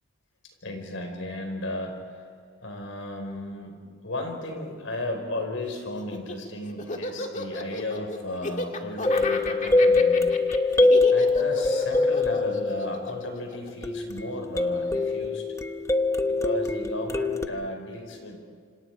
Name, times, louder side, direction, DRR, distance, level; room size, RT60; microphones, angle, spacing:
voice 1, 0.6-2.2 2.6-10.3 11.1-15.4 16.2-18.4, left 1 dB, 80° left, 4 dB, 4.9 m, -34 dB
Laughter, 6.0-14.4, left 2 dB, 40° left, 1.9 m, -34 dB
sound 1, 9.0-13.3 13.8-17.5, left 3 dB, 15° left, 0.9 m, -23 dB
27.5 x 26.5 x 4.8 m, 2.1 s
head